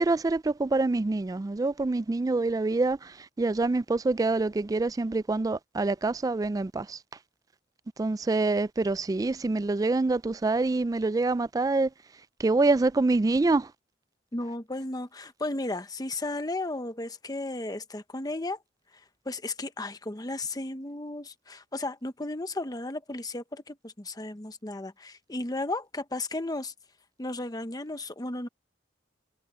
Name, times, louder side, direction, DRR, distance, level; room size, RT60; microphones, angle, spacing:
voice 1, 0.0-7.0 8.0-11.9 12.4-13.7, right 3 dB, 20° right, 0.3 m, -26 dB
voice 2, 14.3-18.6 19.3-26.7 27.2-28.5, left 2 dB, 20° left, 1.0 m, -34 dB
head